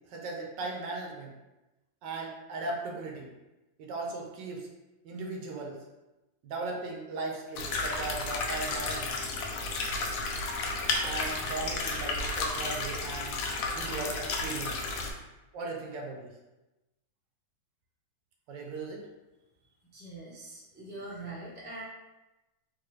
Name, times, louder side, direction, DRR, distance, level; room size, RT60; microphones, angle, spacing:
voice 1, 0.1-1.3 2.0-3.3 3.8-4.7 5.0-5.8 6.4-9.3 11.0-13.4 13.7-14.9 15.5-16.3 18.5-19.1, right 3 dB, 75° right, -1 dB, 1.3 m, -37 dB
sound 1, 7.6-15.1, left 3 dB, 75° left, 0.8 m, -32 dB
voice 2, 19.9-21.8, right 2 dB, 10° right, -7 dB, 0.6 m, -43 dB
3.8 x 2.7 x 3.1 m, 1.0 s
omnidirectional pair, 2.0 m